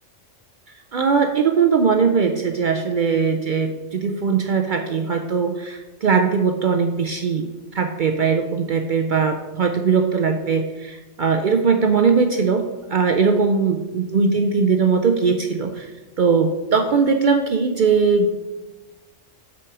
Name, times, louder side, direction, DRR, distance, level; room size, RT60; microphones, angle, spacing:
voice 1, 0.9-15.9 16.2-18.3, right 5 dB, 60° right, 5 dB, 0.5 m, -20 dB
6.1 x 4.7 x 5.9 m, 1.1 s
omnidirectional pair, 1.3 m